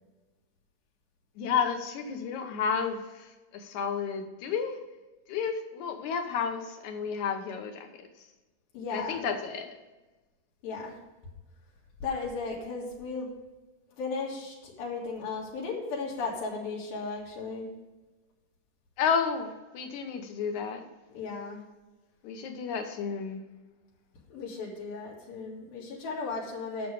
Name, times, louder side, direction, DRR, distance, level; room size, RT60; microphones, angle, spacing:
voice 1, 1.4-4.8 5.3-7.9 8.9-9.7 19.0-20.9 22.2-23.4, left 6 dB, 65° left, 6 dB, 2.2 m, -31 dB
voice 2, 8.7-9.3 10.6-11.0 12.0-13.3 14.0-17.7 21.1-21.6 24.3-26.9, left 4 dB, 90° left, -4 dB, 3.7 m, -35 dB
10.0 x 6.7 x 4.9 m, 1.1 s
omnidirectional pair, 4.0 m